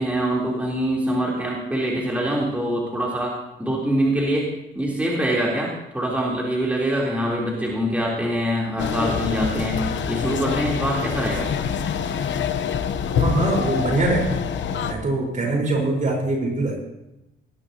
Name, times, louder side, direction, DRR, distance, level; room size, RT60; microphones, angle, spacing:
voice 1, 0.0-4.5 4.7-11.5, right 1 dB, 5° right, -4 dB, 3.6 m, -24 dB
sound 1, 8.8-14.9, left 7 dB, 70° left, 1.0 m, -25 dB
voice 2, 13.2-14.3 14.9-16.8, right 2 dB, 40° right, 0 dB, 4.6 m, -23 dB
19.0 x 12.0 x 3.0 m, 0.91 s
cardioid pair, 90°, 20 cm